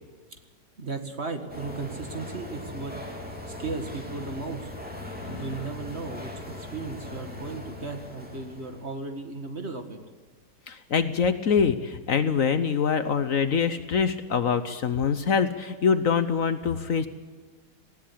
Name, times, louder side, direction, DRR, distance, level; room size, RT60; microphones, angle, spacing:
voice 1, 0.8-2.9 3.6-4.7 5.3-10.0, right 4 dB, 40° right, 6 dB, 2.0 m, -35 dB
sound 1, 1.5-8.9, left 2 dB, 5° right, 3.2 m, -40 dB
voice 2, 5.0-5.4 10.7-17.1, left 6 dB, 55° left, 11 dB, 1.2 m, -24 dB
19.0 x 16.5 x 8.5 m, 1.4 s
omnidirectional pair, 1.8 m